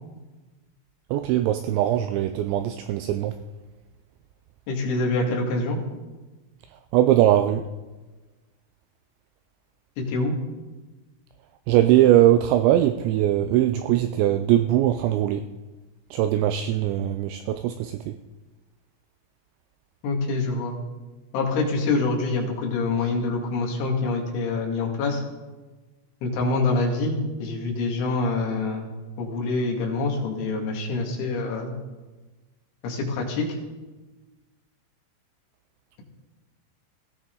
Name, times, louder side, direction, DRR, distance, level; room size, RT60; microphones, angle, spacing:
voice 1, 1.1-3.3 6.9-7.6 11.7-15.4 16.1-18.1, right 12 dB, 85° right, 9 dB, 2.6 m, -21 dB
voice 2, 4.7-5.8 10.0-10.3 20.0-20.8 21.3-25.2 26.2-28.9 29.2-31.8 32.8-33.6, left 3 dB, 70° left, -1 dB, 4.6 m, -25 dB
19.5 x 16.0 x 3.9 m, 1.2 s
omnidirectional pair, 5.7 m